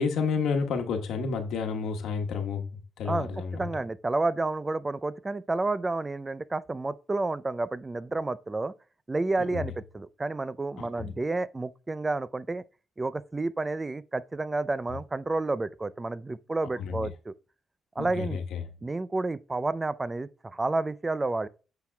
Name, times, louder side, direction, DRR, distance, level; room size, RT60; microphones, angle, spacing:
voice 1, 0.0-3.7 9.4-9.7 10.8-11.1 16.8-17.1 18.0-18.7, left 5 dB, 80° left, 1.2 m, -31 dB
voice 2, 3.1-8.7 9.1-12.6 13.0-17.3 18.0-18.4 18.8-21.5, right 2 dB, 20° right, 0.4 m, -30 dB
8.6 x 5.9 x 2.2 m
cardioid pair, 90°, 0 cm